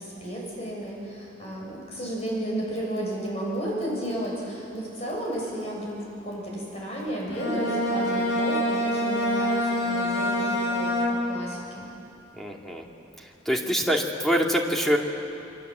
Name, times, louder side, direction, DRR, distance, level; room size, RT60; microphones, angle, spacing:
voice 1, 0.0-11.9, right 1 dB, 35° left, -3 dB, 7.5 m, -33 dB
Bowed string instrument, 7.3-11.5, left 1 dB, 80° left, 3.6 m, -26 dB
voice 2, 12.4-12.8 13.5-15.0, equal, ahead, 0 dB, 2.3 m, -24 dB
28.5 x 23.5 x 8.0 m, 2.7 s
head